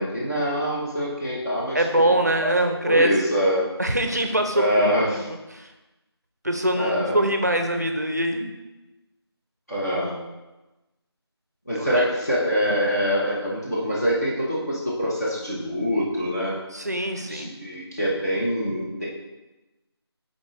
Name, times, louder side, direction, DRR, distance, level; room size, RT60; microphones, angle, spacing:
voice 1, 0.0-2.2 2.9-3.6 4.5-5.1 6.8-7.2 9.7-10.2 11.7-16.5 17.3-19.1, equal, 35° left, -7 dB, 1.0 m, -24 dB
voice 2, 1.7-3.3 3.8-4.7 5.3-5.7 6.4-8.5 11.7-12.0 16.7-17.5, right 1 dB, 40° right, 5 dB, 0.5 m, -23 dB
7.6 x 3.9 x 3.1 m, 1.1 s
figure-of-eight pair, 180°, 14 cm